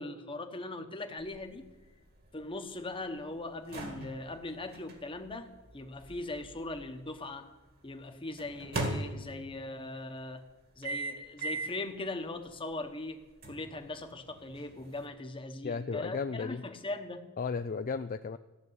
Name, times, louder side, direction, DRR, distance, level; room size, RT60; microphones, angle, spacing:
voice 1, 0.0-1.7 2.3-7.5 7.8-10.4 10.8-17.3, left 2 dB, 25° left, 6 dB, 1.1 m, -40 dB
sound 1, 1.2-7.3 8.4-9.7 10.8-11.9 12.3-12.5 13.4-15.1, right 2 dB, 45° right, 2.2 m, -40 dB
voice 2, 15.6-16.6 17.4-18.4, left 5 dB, 40° left, 9 dB, 0.4 m, -34 dB
15.0 x 6.9 x 9.5 m, 1.2 s
head